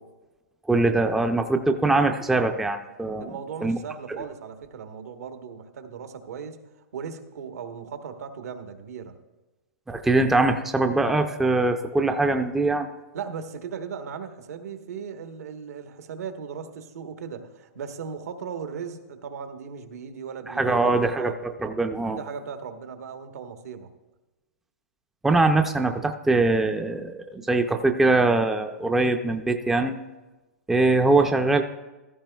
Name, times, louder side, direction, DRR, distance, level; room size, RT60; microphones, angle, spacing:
voice 1, 0.7-3.3 3.6-3.8 9.9-12.9 20.5-22.2 25.2-30.0 30.7-31.6, right 2 dB, 5° right, 6 dB, 0.4 m, -22 dB
voice 2, 3.2-6.6 6.9-9.2 13.1-21.4 22.1-23.9, right 6 dB, 75° right, 7 dB, 1.1 m, -37 dB
15.0 x 13.0 x 2.3 m, 1.1 s
hypercardioid pair, 150°, 8 cm